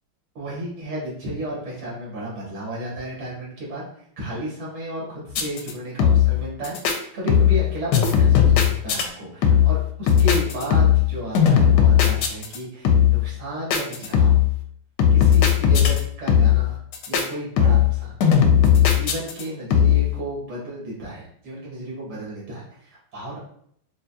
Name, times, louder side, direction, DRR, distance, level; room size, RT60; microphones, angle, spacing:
voice 1, 0.4-3.9 4.2-14.4 15.1-16.8 17.1-18.1 18.9-23.4, right 1 dB, 75° right, -5 dB, 2.5 m, -33 dB
sound 1, 5.3-5.7 6.0-6.4 6.6-7.0 7.3-7.7 7.9-9.0 9.4-9.8 10.1-11.1 11.3-12.6 12.8-13.2 13.7-14.5 15.0-16.0 16.3-16.7 16.9-17.2 17.6-18.0 18.2-19.4 19.7-20.1, left 9 dB, 75° left, 1.1 m, -17 dB
5.4 x 2.3 x 2.7 m, 0.66 s
omnidirectional pair, 2.3 m